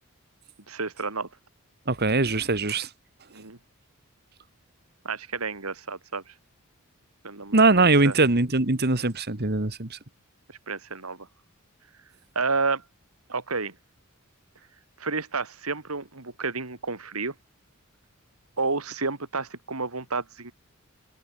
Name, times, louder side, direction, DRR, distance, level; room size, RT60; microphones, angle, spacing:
voice 1, 0.7-1.3 3.3-3.6 5.0-6.3 7.2-8.1 10.5-11.3 12.3-12.8 13.3-13.7 15.0-17.3 18.6-20.5, right 4 dB, 80° right, 2.7 m, -30 dB
voice 2, 1.9-2.9 7.5-10.0, right 3 dB, 50° right, 2.1 m, -21 dB
head